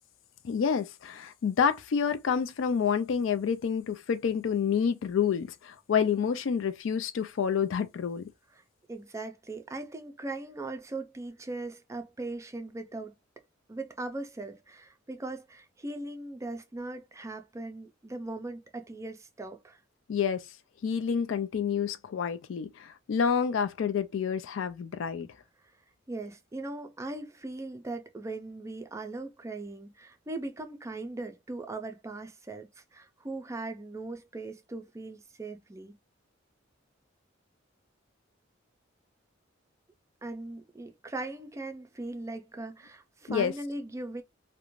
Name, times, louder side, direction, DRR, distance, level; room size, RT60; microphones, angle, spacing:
voice 1, 0.4-8.2 20.1-20.4 20.8-25.3 43.3-43.5, left 7 dB, 70° left, 0.4 m, -28 dB
voice 2, 8.9-13.1 13.7-19.8 26.1-36.0 40.2-44.2, right 2 dB, 15° right, 0.4 m, -39 dB
2.4 x 2.1 x 3.0 m
head